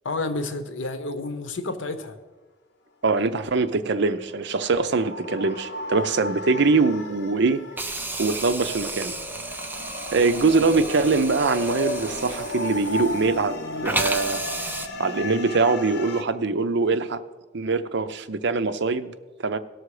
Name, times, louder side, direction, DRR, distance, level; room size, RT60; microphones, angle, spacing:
voice 1, 0.0-2.2, left 2 dB, 85° left, 9 dB, 0.9 m, -30 dB
voice 2, 3.0-7.6 8.2-9.1 10.1-14.4 15.0-17.2 17.5-19.1 19.4-19.6, right 3 dB, 65° right, 11 dB, 0.6 m, -23 dB
sound 1, 4.0-16.2, left 1 dB, 60° left, 1.1 m, -35 dB
Hiss, 7.8-13.5 13.8-14.9, right 2 dB, 10° right, 0.7 m, -33 dB
18.0 x 6.4 x 4.8 m, 1.3 s
head